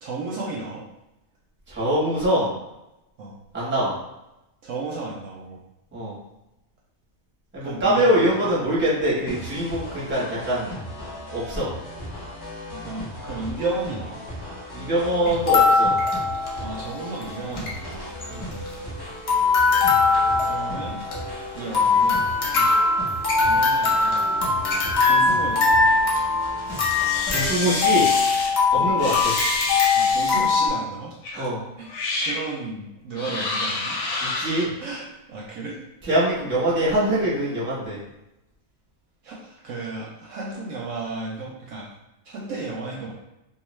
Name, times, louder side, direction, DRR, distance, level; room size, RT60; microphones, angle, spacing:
voice 1, 0.0-0.8 3.2-3.4 4.6-5.6 7.6-8.6 12.7-14.2 16.6-18.1 20.4-21.0 21.5-22.2 23.4-25.7 28.7-28.9 29.9-31.5 31.8-31.9 32.2-34.4 34.8-35.8 39.2-41.9 42.2-43.1, right 3 dB, 70° right, -3 dB, 0.8 m, -33 dB
voice 2, 1.7-2.5 3.5-3.9 5.9-6.2 7.5-10.7 11.3-11.7 14.7-15.9 18.3-18.5 22.5-22.7 26.6-28.1 28.7-29.4 31.4-31.6 34.2-34.7 36.0-38.0, right 1 dB, 10° right, -7 dB, 0.7 m, -24 dB
sound 1, 9.3-27.5, equal, 30° left, 0.5 m, -37 dB
sound 2, 15.3-16.9 17.2-17.3 17.5-17.7 18.2-19.0 19.3-30.7, left 4 dB, 55° left, 0.8 m, -21 dB
robot arms, 26.7-28.5 29.0-30.5 31.2-31.4 31.9-32.4 33.1-34.6, left 2 dB, 85° left, 1.1 m, -28 dB
2.4 x 2.3 x 3.0 m, 0.91 s
omnidirectional pair, 1.5 m